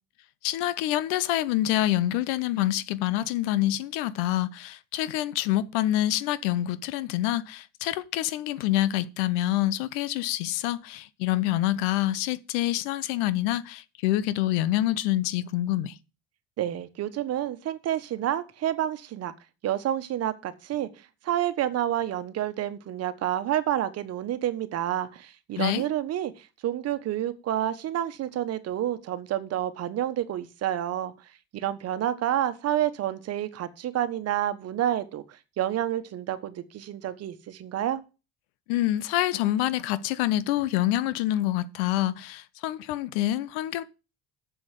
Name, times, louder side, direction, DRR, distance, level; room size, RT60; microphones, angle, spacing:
voice 1, 0.4-15.9 25.6-25.8 38.7-43.8, left 14 dB, 85° left, 0.8 m, -26 dB
voice 2, 16.6-19.3 19.6-20.9 21.2-31.1 31.5-38.0, right 11 dB, 55° right, 1.3 m, -29 dB
7.6 x 7.1 x 7.5 m
supercardioid pair, 85°, 29 cm